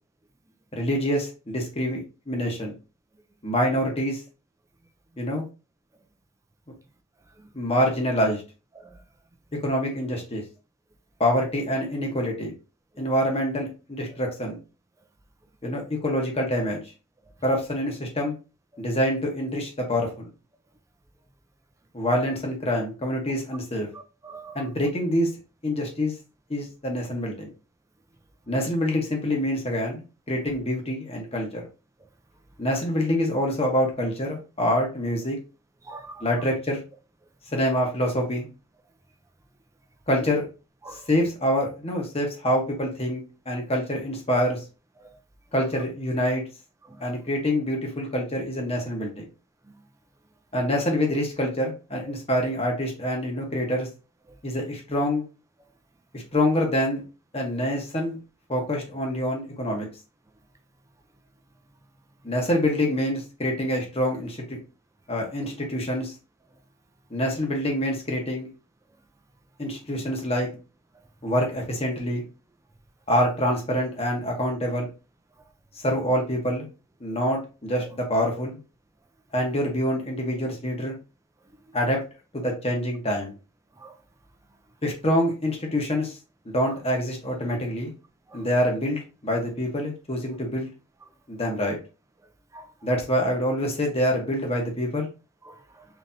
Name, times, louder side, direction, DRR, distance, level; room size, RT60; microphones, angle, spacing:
voice 1, 0.7-2.7 3.4-4.2 5.2-5.4 7.5-8.4 9.6-10.4 11.2-12.5 13.0-14.6 15.6-16.8 17.4-18.4 18.8-20.3 21.9-23.9 24.5-25.3 25.6-26.1 26.5-27.5 28.5-31.7 32.6-35.4 36.2-36.8 37.5-38.5 40.1-40.5 41.1-44.6 45.5-46.4 47.0-49.2 50.5-53.9 54.4-55.2 56.1-57.0 57.3-58.2 58.5-59.9 62.2-64.6 65.1-66.1 67.1-68.5 69.6-70.5 71.2-72.2 73.1-74.9 75.8-76.7 77.0-78.6 79.3-81.0 81.7-82.0 82.3-83.3 84.8-86.2 86.4-87.9 88.3-90.7 91.3-91.8 92.8-95.1, equal, 30° left, 1.1 m, -26 dB
voice 2, 24.2-24.6 35.8-36.3 37.7-37.9 40.8-41.1 45.0-45.2 46.9-47.0 52.1-52.2 83.8-84.0 88.3-88.5 92.5-92.7 95.4-95.9, right 3 dB, 15° right, 0.4 m, -44 dB
3.9 x 3.3 x 2.7 m
head